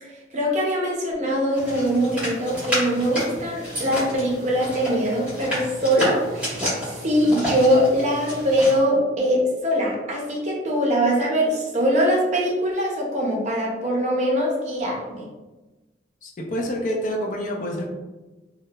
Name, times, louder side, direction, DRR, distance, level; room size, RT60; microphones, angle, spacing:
voice 1, 0.0-15.2, equal, 40° right, -2 dB, 0.5 m, -22 dB
sound 1, 1.5-8.8, equal, 10° right, 1.2 m, -30 dB
voice 2, 16.2-17.9, equal, 45° left, -1 dB, 0.4 m, -27 dB
2.8 x 2.0 x 2.2 m, 1.2 s
head